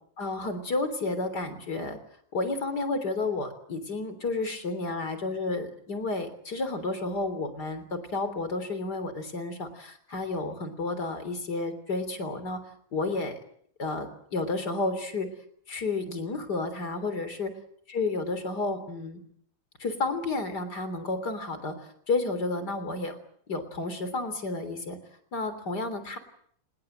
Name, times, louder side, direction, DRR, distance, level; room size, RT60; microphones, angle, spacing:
voice 1, 0.2-2.0 2.3-12.6 12.9-13.4 13.8-15.3 15.7-17.5 17.9-19.2 19.8-23.2 23.5-25.0 25.3-26.2, left 3 dB, 55° left, 10 dB, 4.0 m, -31 dB
26.0 x 21.5 x 7.9 m, 0.64 s
omnidirectional pair, 2.1 m